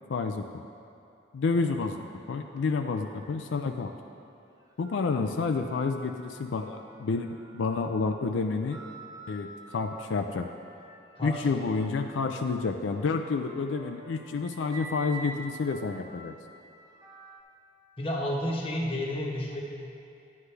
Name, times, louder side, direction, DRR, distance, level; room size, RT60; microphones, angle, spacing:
voice 1, 0.1-0.5 1.3-3.9 4.8-8.8 9.3-10.5 11.2-16.4, left 4 dB, 85° left, 6 dB, 0.4 m, -29 dB
sound 1, 2.2-4.1 4.6-17.4, right 2 dB, 20° right, 0.8 m, -49 dB
voice 2, 11.1-11.6 18.0-19.6, left 1 dB, 30° left, -3 dB, 1.1 m, -31 dB
9.5 x 9.5 x 3.4 m, 2.6 s
head